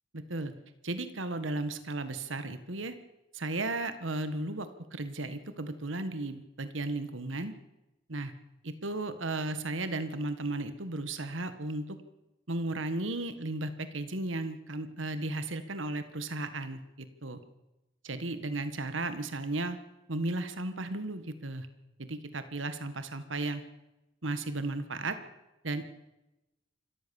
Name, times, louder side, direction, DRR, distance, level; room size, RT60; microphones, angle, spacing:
voice 1, 0.1-0.5 0.8-2.9 3.3-7.5 8.1-8.3 8.6-12.0 12.5-17.4 18.0-19.8 20.1-21.7 22.0-23.6 24.2-25.2 25.6-25.9, right 2 dB, 80° right, 11 dB, 1.7 m, -35 dB
26.5 x 14.0 x 7.1 m, 0.95 s
head